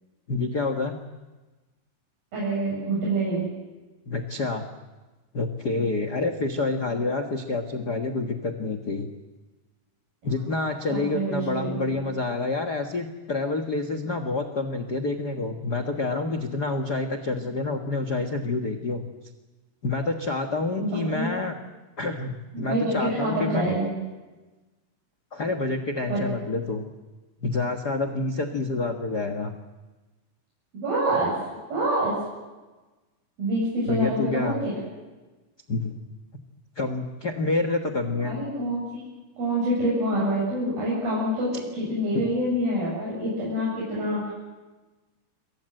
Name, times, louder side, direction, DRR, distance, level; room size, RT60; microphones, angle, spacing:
voice 1, 0.3-1.0 4.1-4.7 5.3-9.1 10.2-19.0 19.8-21.6 22.0-23.7 25.3-26.9 27.4-29.5 33.9-34.6 35.7-36.0 36.8-38.4 42.1-42.3, left 3 dB, 60° left, 8 dB, 1.0 m, -28 dB
voice 2, 2.3-3.5 10.9-12.0 20.8-21.3 22.5-23.9 26.1-26.2 30.7-31.3 31.7-32.1 33.4-34.7 38.2-39.1 39.4-44.3, right 1 dB, 65° right, -6 dB, 9.8 m, -26 dB
28.0 x 23.5 x 7.8 m, 1.2 s
omnidirectional pair, 4.5 m